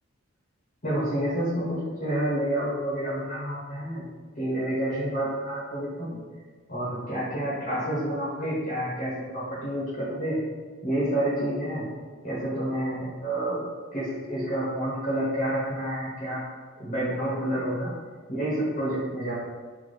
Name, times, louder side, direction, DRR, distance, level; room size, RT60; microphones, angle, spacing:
voice 1, 0.8-4.1 4.4-6.1 6.7-10.4 10.8-11.8 12.2-13.7 13.9-16.4 16.8-17.9 18.3-19.3, right 1 dB, 40° left, -8 dB, 1.1 m, -29 dB
3.3 x 2.8 x 4.2 m, 1.5 s
head